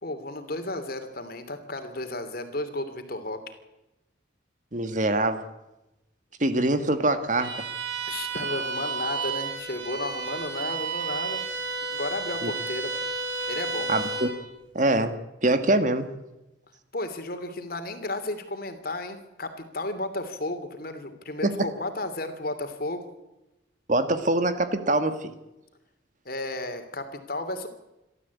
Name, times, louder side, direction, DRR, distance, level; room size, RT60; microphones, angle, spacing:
voice 1, 0.0-3.5 8.1-11.4 11.9-12.9 13.5-13.9 16.9-23.1 26.2-27.7, left 2 dB, 50° left, 8 dB, 2.9 m, -33 dB
voice 2, 4.7-5.4 6.4-7.7 12.4-12.5 13.9-14.3 14.8-15.1 15.4-16.1 21.4-21.7 23.9-25.3, right 2 dB, 40° right, 9 dB, 1.8 m, -24 dB
Bowed string instrument, 7.4-14.4, right 4 dB, 75° right, 5.0 m, -32 dB
27.5 x 13.0 x 8.4 m, 0.97 s
head